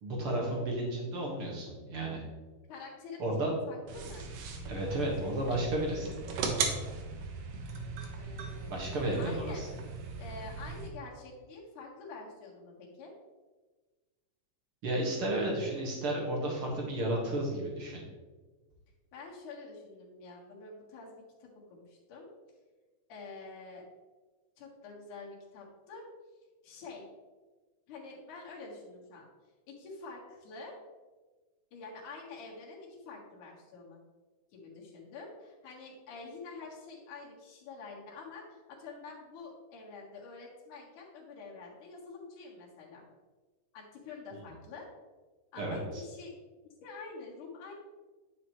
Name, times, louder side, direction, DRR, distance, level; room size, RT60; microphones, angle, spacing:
voice 1, 0.0-2.2 3.2-3.5 4.7-6.1 8.7-9.7 14.8-18.0 45.6-46.0, right 1 dB, 50° right, -2 dB, 2.2 m, -32 dB
voice 2, 2.7-4.3 8.1-8.9 9.2-9.6 10.2-13.1 19.1-22.3 23.1-23.8 24.6-26.0 26.6-27.0 27.9-29.3 29.7-30.7 31.7-34.0 34.5-43.0 43.7-44.9 45.5-46.3 46.8-47.7, left 4 dB, 70° left, -3 dB, 3.0 m, -47 dB
sound 1, 3.9-10.9, right 4 dB, 80° right, 2.5 m, -38 dB
9.9 x 6.4 x 3.1 m, 1.3 s
omnidirectional pair, 3.8 m